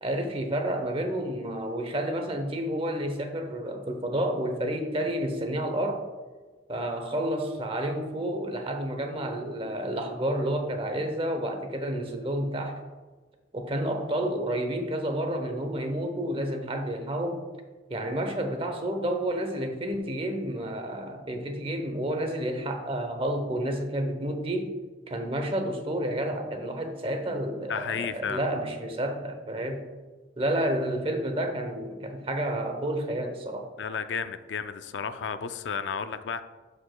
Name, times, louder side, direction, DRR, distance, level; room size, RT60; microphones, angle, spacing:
voice 1, 0.0-6.1 6.7-12.7 13.5-17.4 17.9-24.7 25.1-29.8 30.4-33.7, right 1 dB, 30° right, 5 dB, 0.8 m, -30 dB
voice 2, 27.7-28.4 33.8-36.4, left 6 dB, 70° left, 11 dB, 0.4 m, -32 dB
13.5 x 4.9 x 2.2 m, 1.3 s
head